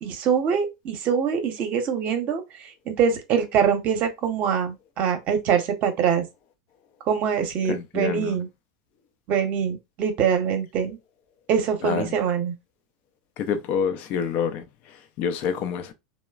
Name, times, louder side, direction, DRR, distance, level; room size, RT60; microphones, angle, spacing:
voice 1, 0.0-6.3 7.1-8.5 9.3-11.0 11.5-12.6, right 7 dB, 45° right, 0.8 m, -24 dB
voice 2, 7.7-8.4 11.8-12.2 13.4-15.9, left 7 dB, 50° left, 0.5 m, -28 dB
3.0 x 2.0 x 2.3 m
hypercardioid pair, 100°, 4 cm